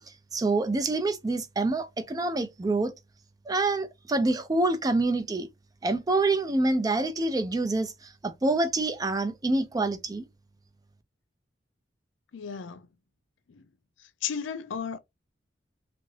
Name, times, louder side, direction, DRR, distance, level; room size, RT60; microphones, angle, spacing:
voice 1, 0.3-2.9 3.5-5.5 5.8-7.9 8.2-10.3, right 2 dB, 20° right, 0.4 m, -26 dB
voice 2, 12.3-12.9 13.5-13.7 14.0-15.0, left 7 dB, 80° left, 0.5 m, -34 dB
2.6 x 2.5 x 3.1 m
head